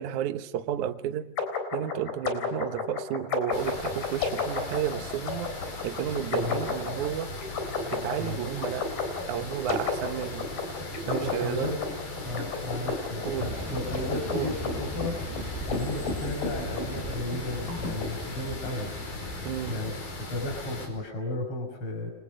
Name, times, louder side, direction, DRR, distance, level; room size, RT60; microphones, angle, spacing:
voice 1, 0.0-1.3 1.7-7.3 7.9-8.9 9.3-10.5 11.1-11.7 13.3-13.6 14.3-14.6 19.4-19.9, right 11 dB, 65° right, 2.3 m, -32 dB
sound 1, 1.4-18.1, left 4 dB, 85° left, 5.7 m, -33 dB
sound 2, 3.5-20.9, left 2 dB, 60° left, 6.6 m, -39 dB
voice 2, 11.1-11.8 12.1-15.1 15.7-18.9 19.7-19.9 20.3-22.1, left 1 dB, 35° left, 6.1 m, -34 dB
sound 3, 13.4-19.7, right 1 dB, 5° right, 6.8 m, -39 dB
29.0 x 24.5 x 6.5 m
omnidirectional pair, 4.1 m